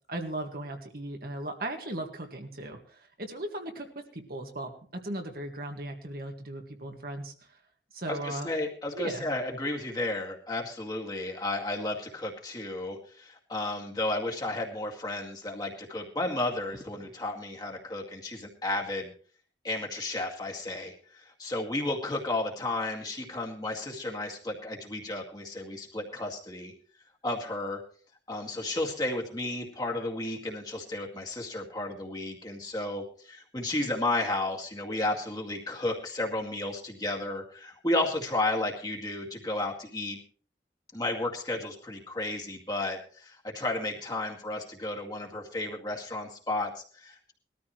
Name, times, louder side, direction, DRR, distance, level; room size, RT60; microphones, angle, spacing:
voice 1, 0.1-3.9 4.1-7.3 7.9-8.5 8.9-9.3, right 1 dB, 55° right, 4 dB, 1.8 m, -37 dB
voice 2, 8.1-19.1 19.6-26.7 27.2-27.8 28.3-40.2 40.9-47.3, left 2 dB, 20° left, 0 dB, 2.1 m, -33 dB
20.5 x 13.5 x 3.1 m, 0.43 s
head